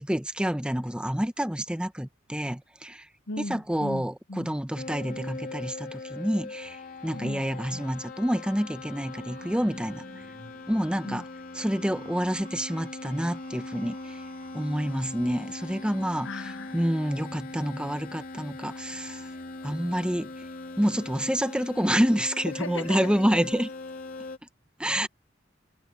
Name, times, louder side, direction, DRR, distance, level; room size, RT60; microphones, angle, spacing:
voice 1, 0.0-3.1 3.5-10.0 10.7-11.2 11.6-14.2 14.5-16.3 16.7-19.3 19.6-20.3 20.8-23.7 24.8-25.1, equal, 5° right, 1.0 m, -28 dB
voice 2, 3.3-4.5 7.1-7.4 7.7-7.9 11.0-11.2 16.2-16.8 22.5-23.1 24.9-25.1, left 2 dB, 80° left, 1.0 m, -37 dB
sound 1, 4.8-24.4, left 2 dB, 50° left, 3.0 m, -41 dB
sound 2, 9.0-17.1, right 2 dB, 45° right, 4.3 m, -54 dB
head